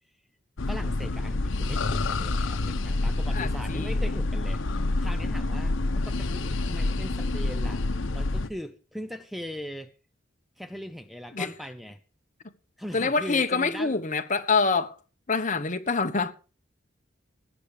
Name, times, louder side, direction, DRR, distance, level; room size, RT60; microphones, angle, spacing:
sound 1, 0.6-8.5, left 2 dB, 85° left, 0.9 m, -28 dB
voice 1, 0.7-7.8 8.1-9.9 10.6-12.0 12.8-14.0, equal, ahead, 0.6 m, -40 dB
voice 2, 3.3-3.9 11.3-11.5 12.9-14.9 15.3-16.3, left 4 dB, 40° left, 1.3 m, -26 dB
18.5 x 8.3 x 5.0 m
head